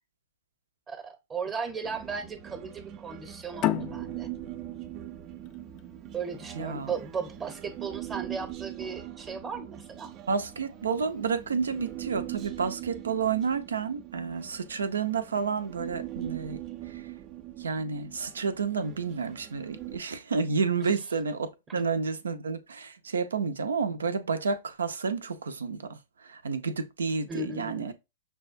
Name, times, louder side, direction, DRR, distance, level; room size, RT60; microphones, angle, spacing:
voice 1, 0.9-4.3 6.1-10.1 27.3-27.9, right 5 dB, 20° right, 0.8 m, -36 dB
Human voice, 1.8-20.0, right 13 dB, 35° right, 0.5 m, -42 dB
sound 1, 3.6-6.8, left 13 dB, 35° left, 0.3 m, -33 dB
voice 2, 6.6-6.9 10.3-16.6 16.9-17.0 17.6-26.0 26.2-27.9, right 5 dB, 80° right, 0.6 m, -30 dB
6.0 x 2.3 x 2.5 m
hypercardioid pair, 115°, 0 cm